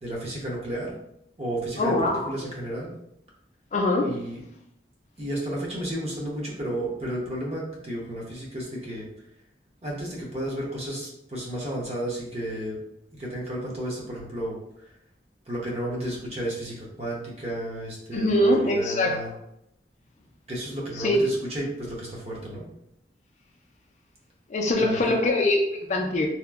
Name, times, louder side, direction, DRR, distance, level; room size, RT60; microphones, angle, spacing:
voice 1, 0.0-1.0 1.4-2.9 4.0-4.4 5.2-9.1 9.8-12.8 13.1-14.9 15.5-19.3 20.5-22.7 24.8-25.2, right 1 dB, 35° right, -3 dB, 0.7 m, -32 dB
voice 2, 1.8-2.3 3.7-4.1 18.1-19.2 21.0-21.2 24.5-26.3, left 1 dB, 40° left, 1 dB, 0.3 m, -23 dB
2.8 x 2.4 x 2.3 m, 0.76 s
head